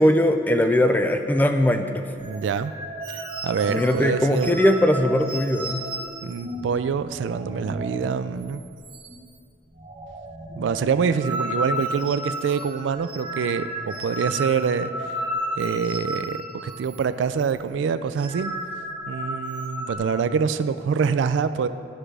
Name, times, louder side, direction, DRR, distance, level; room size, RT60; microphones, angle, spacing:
voice 1, 0.0-2.0 3.7-5.9, left 1 dB, 10° left, 7 dB, 0.3 m, -20 dB
sound 1, 2.2-8.1 8.4-8.6 8.8-9.4 9.7-17.0 17.3-17.5 18.0-20.0, right 1 dB, 25° right, 1.1 m, -33 dB
voice 2, 2.2-2.7 3.4-4.6 6.2-8.6 10.6-14.9 15.6-18.5 19.1-21.7, right 6 dB, 85° right, 12 dB, 0.3 m, -25 dB
11.5 x 6.1 x 3.3 m, 2.4 s
head